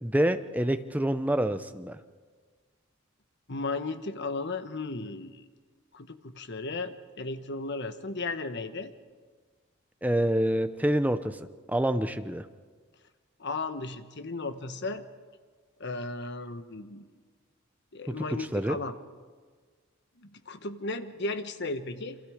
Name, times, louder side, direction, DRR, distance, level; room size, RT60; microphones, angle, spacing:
voice 1, 0.0-2.0 10.0-11.4 11.7-12.4 18.1-18.8, right 1 dB, 5° right, 10 dB, 0.8 m, -27 dB
voice 2, 3.5-5.4 5.9-8.9 13.4-15.1 15.8-17.0 17.9-19.0 20.2-22.2, left 3 dB, 55° left, 9 dB, 1.3 m, -35 dB
28.5 x 24.5 x 5.1 m, 1.5 s
head